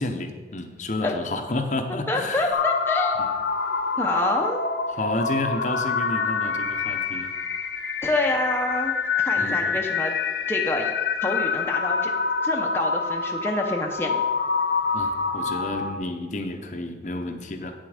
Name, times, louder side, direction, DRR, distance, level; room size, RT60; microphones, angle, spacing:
voice 1, 0.0-2.6 5.0-7.3 9.4-9.6 14.9-17.7, left 2 dB, 45° left, 5 dB, 0.8 m, -30 dB
voice 2, 2.1-3.2 4.0-4.6 8.0-10.1 10.5-10.9 11.2-12.1 12.4-14.2, left 2 dB, 15° left, 1 dB, 0.7 m, -26 dB
sound 1, 2.5-15.9, left 5 dB, 75° left, 0.8 m, -26 dB
8.9 x 7.5 x 4.9 m, 1.4 s
head